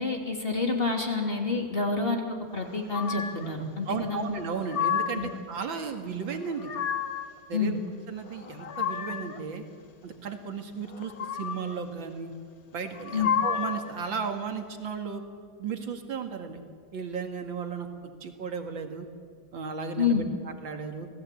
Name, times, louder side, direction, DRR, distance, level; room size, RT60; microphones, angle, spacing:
voice 1, 0.0-2.2 2.5-4.2 5.1-5.3 7.5-7.8 13.1-13.3 20.0-20.3, left 4 dB, 30° left, 2 dB, 3.1 m, -28 dB
sound 1, 2.9-3.5 4.4-5.4 6.3-7.3 8.3-9.4 10.9-11.8 12.9-13.9, left 8 dB, 50° left, 1.5 m, -31 dB
voice 2, 3.9-6.7 7.5-7.8 8.1-9.6 10.0-12.3 12.7-15.2 15.6-16.6 16.9-17.9 18.2-19.1 19.5-21.1, right 5 dB, 75° right, 5 dB, 2.8 m, -35 dB
26.5 x 18.0 x 8.5 m, 2.2 s
omnidirectional pair, 2.1 m